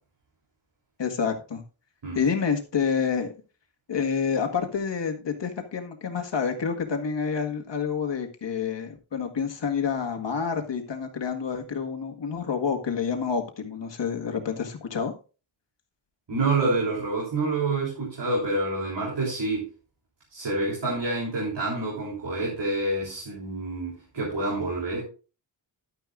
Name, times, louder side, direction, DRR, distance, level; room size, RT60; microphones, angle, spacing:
voice 1, 1.0-1.6 2.1-3.3 3.9-15.1, left 6 dB, 65° left, 1.8 m, -28 dB
voice 2, 16.3-19.7 20.3-25.0, right 2 dB, 65° right, 3.7 m, -27 dB
11.5 x 9.4 x 2.5 m
wide cardioid pair, 120°, 45 cm